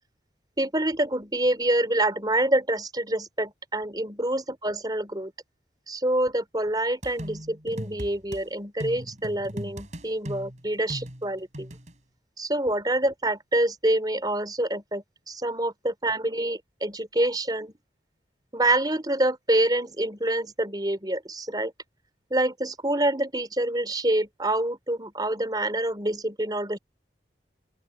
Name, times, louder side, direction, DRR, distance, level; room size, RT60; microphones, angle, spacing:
voice 1, 0.6-5.3 5.9-11.7 12.4-17.7 18.5-21.7 22.3-26.8, right 1 dB, 25° right, 4.0 m, -26 dB
sound 1, 7.0-8.4 8.8-11.9, equal, 45° right, 4.1 m, -38 dB
open air
head